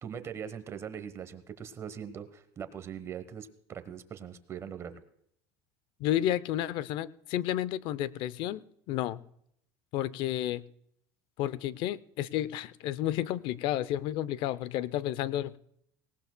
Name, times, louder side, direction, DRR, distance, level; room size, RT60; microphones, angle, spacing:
voice 1, 0.0-5.0, right 8 dB, 30° right, 11 dB, 1.0 m, -41 dB
voice 2, 6.0-8.6 8.9-9.2 9.9-10.6 11.4-15.6, left 12 dB, 60° left, 19 dB, 0.6 m, -31 dB
18.5 x 18.5 x 2.2 m, 0.71 s
cardioid pair, 145°, 9 cm